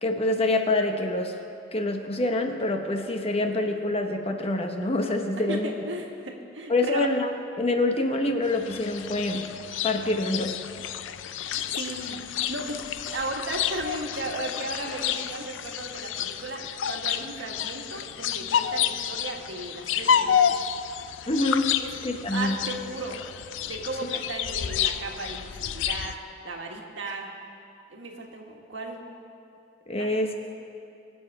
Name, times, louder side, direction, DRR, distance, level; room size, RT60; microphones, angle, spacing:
voice 1, 0.0-1.4 1.7-5.7 6.7-7.3 7.6-9.5 9.8-10.6 21.3-21.7 22.0-22.6 29.9-30.3, left 2 dB, 35° left, 5 dB, 1.0 m, -26 dB
voice 2, 5.4-7.1 11.5-12.2 12.5-12.8 13.1-20.6 21.8-21.9 22.3-23.2 23.6-26.2 26.4-27.3 27.9-29.0 30.0-30.1, right 2 dB, 80° right, 1 dB, 1.7 m, -35 dB
sound 1, 8.5-26.2, left 8 dB, 80° left, 0.4 m, -30 dB
22.5 x 8.0 x 4.8 m, 2.6 s
head